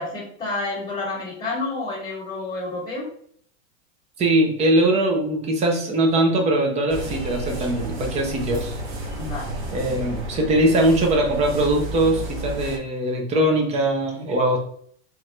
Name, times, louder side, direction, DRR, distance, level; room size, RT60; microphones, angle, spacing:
voice 1, 0.0-3.1 9.2-9.6, left 3 dB, 15° left, -8 dB, 1.3 m, -29 dB
voice 2, 4.2-8.8 9.7-14.6, right 1 dB, 15° right, 2 dB, 0.7 m, -21 dB
sound 1, 6.9-12.8, right 1 dB, 35° right, 1.0 m, -32 dB
3.6 x 3.2 x 3.2 m, 0.62 s
hypercardioid pair, 140°, 40 cm